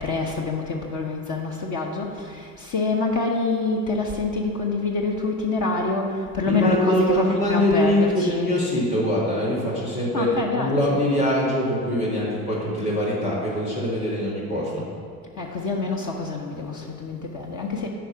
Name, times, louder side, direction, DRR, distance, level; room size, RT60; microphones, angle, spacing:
voice 1, 0.0-8.5 10.1-11.0 15.4-17.9, left 3 dB, 40° left, -1 dB, 1.2 m, -26 dB
voice 2, 6.5-10.3 10.6-14.8, left 1 dB, 90° left, -6 dB, 2.2 m, -23 dB
9.0 x 5.2 x 5.9 m, 2.3 s
hypercardioid pair, 65°, 45 cm